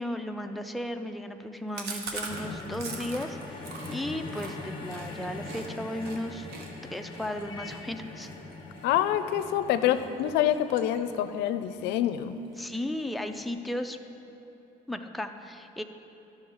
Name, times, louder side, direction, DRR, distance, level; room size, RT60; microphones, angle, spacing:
voice 1, 0.0-6.5 6.9-8.3 12.6-14.0 14.9-15.8, left 1 dB, ahead, 5 dB, 0.4 m, -35 dB
Chewing mastication, 1.7-5.7 6.0-6.2 6.5-9.5 9.9-10.2 10.5-11.4 11.7-11.8 12.0-12.1 12.4-13.0, right 4 dB, 75° right, 1.0 m, -42 dB
sound 1, 2.3-12.5 13.4-13.5, left 2 dB, 30° left, 1.3 m, -42 dB
voice 2, 8.8-12.4, left 11 dB, 90° left, 11 dB, 0.4 m, -26 dB
11.5 x 6.2 x 3.9 m, 2.9 s
cardioid pair, 110°, 17 cm